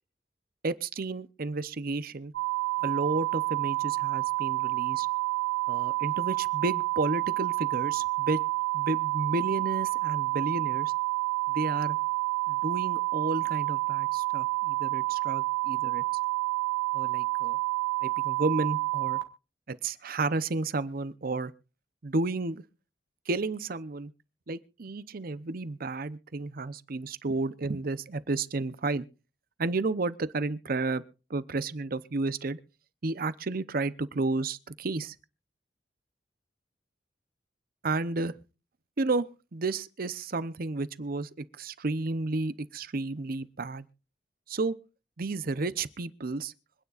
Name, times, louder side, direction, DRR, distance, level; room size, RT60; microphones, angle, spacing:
voice 1, 0.6-2.3 2.8-5.1 5.7-8.4 8.7-10.9 11.5-12.0 12.5-16.0 16.9-17.6 18.0-19.2 19.7-21.5 22.0-22.6 23.3-24.1 24.5-29.0 29.6-31.0 31.3-32.6 33.0-35.2 37.8-38.3 39.0-39.3 39.5-43.9 44.5-44.8 45.2-46.5, right 3 dB, 55° right, 0.7 m, -32 dB
sound 1, 2.3-19.2, right 24 dB, 85° right, 1.8 m, -29 dB
25.5 x 9.6 x 2.4 m
head